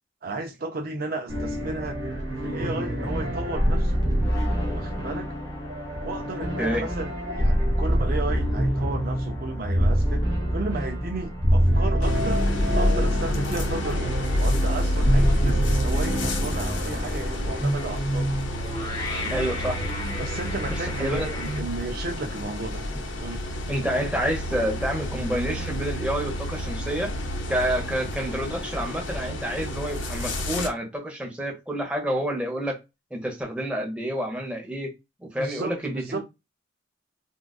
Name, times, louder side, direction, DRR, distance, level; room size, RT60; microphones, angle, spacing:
voice 1, 0.2-2.0 2.4-4.0 4.7-5.3 6.0-10.2 10.5-14.1 14.4-18.4 19.1-19.5 20.2-22.9 23.2-23.4 35.4-36.2, right 2 dB, 50° right, 0.5 m, -34 dB
sound 1, 1.3-17.7, equal, 80° right, 1.3 m, -26 dB
sound 2, 3.2-21.6, equal, 20° left, 0.9 m, -32 dB
sound 3, 12.0-30.7, left 1 dB, 80° left, 0.7 m, -29 dB
voice 2, 19.3-19.8 20.7-21.4 23.7-27.1 27.5-32.8 33.1-34.9 35.2-36.2, equal, 5° right, 0.9 m, -28 dB
3.7 x 2.4 x 2.3 m
head